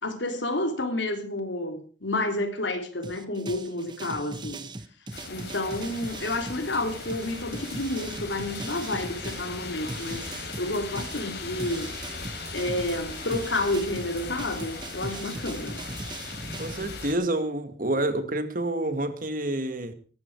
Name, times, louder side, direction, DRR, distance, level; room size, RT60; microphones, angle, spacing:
voice 1, 0.0-4.7 5.3-10.2 10.6-11.9 12.5-15.8, left 1 dB, 85° left, 6 dB, 3.4 m, -30 dB
sound 1, 3.0-9.5 9.9-16.7, right 2 dB, 25° right, 1.0 m, -40 dB
sound 2, 5.1-17.1, left 3 dB, 60° left, 4.6 m, -38 dB
voice 2, 16.6-19.9, right 1 dB, 50° right, 9 dB, 2.1 m, -28 dB
17.5 x 15.0 x 4.8 m, 0.38 s
head